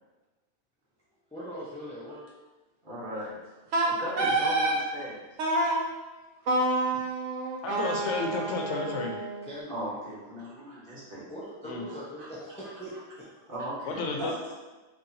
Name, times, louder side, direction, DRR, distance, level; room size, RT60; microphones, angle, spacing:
voice 1, 1.3-2.2 3.7-3.8 9.4-9.8 11.3-13.2, equal, 10° left, -7 dB, 0.4 m, -41 dB
voice 2, 2.8-3.4 3.8-5.1 9.7-11.2 11.9-12.3 13.5-14.8, equal, 50° right, -7 dB, 1.2 m, -38 dB
Wind instrument woodwind instrument, 3.7-4.8 5.4-5.8 6.5-9.5, right 2 dB, 90° right, 1.0 m, -28 dB
voice 3, 7.6-9.2 11.6-11.8 13.9-14.3, left 3 dB, 90° left, 2 dB, 1.0 m, -31 dB
3.9 x 2.9 x 2.8 m, 1.2 s
omnidirectional pair, 1.2 m